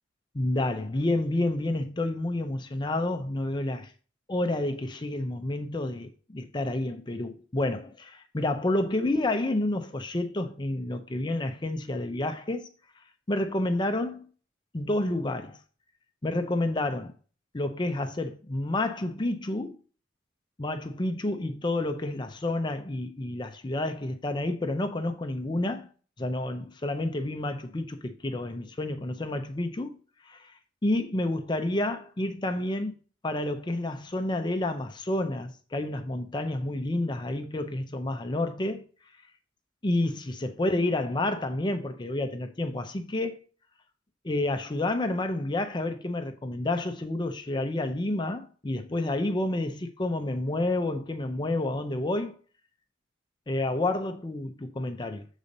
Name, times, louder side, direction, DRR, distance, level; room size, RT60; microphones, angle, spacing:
voice 1, 0.3-3.9 4.3-12.7 13.3-14.3 14.7-15.6 16.2-17.1 17.5-19.8 20.6-25.9 26.2-30.0 30.2-32.9 33.2-38.8 39.8-43.4 44.2-52.4 53.5-55.3, left 1 dB, 25° left, 0.5 m, -29 dB
6.9 x 4.0 x 5.2 m
head